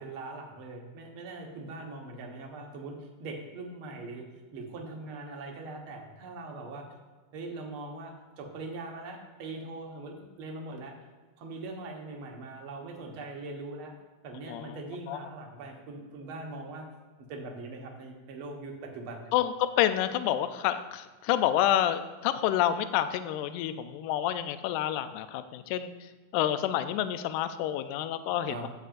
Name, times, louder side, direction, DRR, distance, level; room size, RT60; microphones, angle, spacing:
voice 1, 0.0-4.2 4.5-6.9 7.3-10.9 11.4-13.9 14.2-16.9 17.3-19.3 28.5-28.7, right 2 dB, 55° right, 1 dB, 1.6 m, -41 dB
voice 2, 19.3-25.9 26.3-28.7, left 11 dB, 80° left, 11 dB, 1.9 m, -28 dB
12.0 x 8.1 x 2.5 m, 1.4 s
omnidirectional pair, 3.8 m